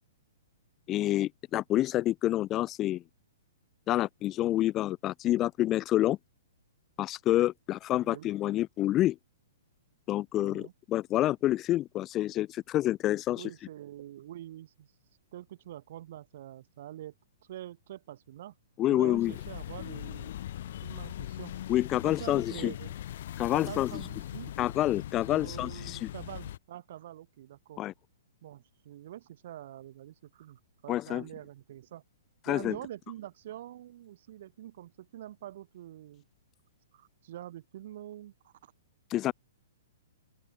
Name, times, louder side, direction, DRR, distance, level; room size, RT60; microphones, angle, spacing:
voice 1, 0.9-3.0 3.9-6.2 7.0-9.2 10.1-13.4 18.8-19.3 21.7-22.7 23.4-24.0 24.6-26.1 27.8-27.9 30.9-31.2 32.5-32.8 39.1-39.3, left 14 dB, 20° left, 1.4 m, -28 dB
voice 2, 10.3-10.7 13.4-14.9 15.3-17.1 17.4-18.5 18.9-20.3 20.8-21.5 22.0-22.9 23.5-24.5 25.3-27.8 28.4-32.0 32.5-36.2 36.9-38.7, right 13 dB, 50° right, 3.4 m, -45 dB
sound 1, 19.1-26.6, left 12 dB, 55° left, 3.1 m, -40 dB
open air
hypercardioid pair, 160°, 0 cm